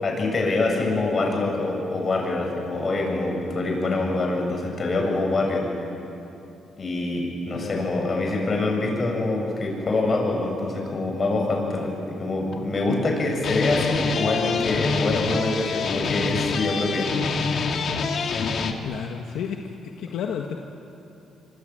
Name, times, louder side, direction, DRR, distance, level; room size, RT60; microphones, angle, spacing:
voice 1, 0.0-5.7 6.8-17.1, left 2 dB, 40° left, 1 dB, 7.8 m, -25 dB
voice 2, 7.5-7.9 18.8-20.6, left 7 dB, 80° left, 3 dB, 1.5 m, -32 dB
sound 1, 12.4-13.1 13.4-18.7, left 4 dB, 60° left, 2.4 m, -26 dB
25.5 x 25.0 x 9.0 m, 2.8 s
cardioid pair, 90°, 0 cm